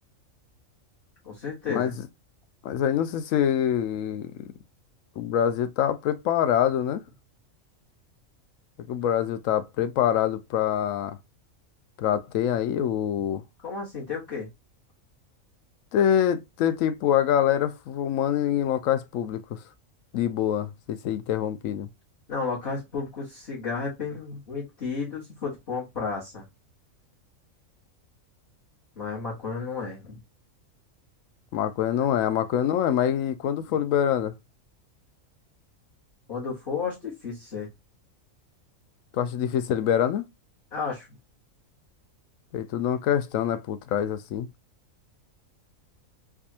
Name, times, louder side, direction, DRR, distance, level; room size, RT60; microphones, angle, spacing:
voice 1, 1.2-2.0 13.6-14.5 22.3-26.4 29.0-30.2 36.3-37.7 40.7-41.2, left 5 dB, 50° left, 1.7 m, -32 dB
voice 2, 2.6-4.3 5.2-7.0 8.9-11.2 12.0-13.4 15.9-19.6 20.1-21.9 31.5-34.3 39.2-40.3 42.5-44.5, left 10 dB, 75° left, 1.0 m, -25 dB
4.6 x 2.4 x 2.7 m
omnidirectional pair, 1.4 m